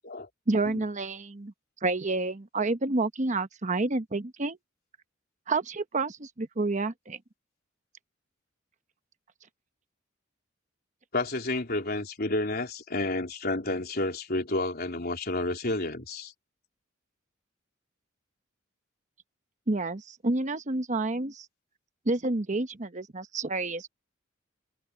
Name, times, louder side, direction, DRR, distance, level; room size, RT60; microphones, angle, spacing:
voice 1, 0.5-1.5 1.8-4.6 5.5-7.2 19.7-21.5 22.0-23.9, right 2 dB, 40° right, 1.0 m, -29 dB
voice 2, 11.1-16.3, left 2 dB, 50° left, 3.8 m, -30 dB
open air
head